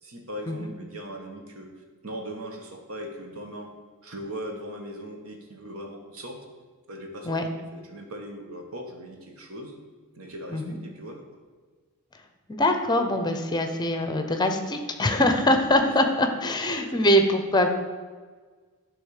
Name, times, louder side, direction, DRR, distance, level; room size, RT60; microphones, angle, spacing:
voice 1, 0.0-1.7 2.0-3.7 4.0-6.4 6.9-7.4 7.7-9.8 10.1-11.2 15.8-15.9 16.9-17.1, equal, 65° right, 2 dB, 1.4 m, -39 dB
voice 2, 12.5-17.7, left 1 dB, 20° left, 6 dB, 0.7 m, -23 dB
10.5 x 3.6 x 6.5 m, 1.5 s
head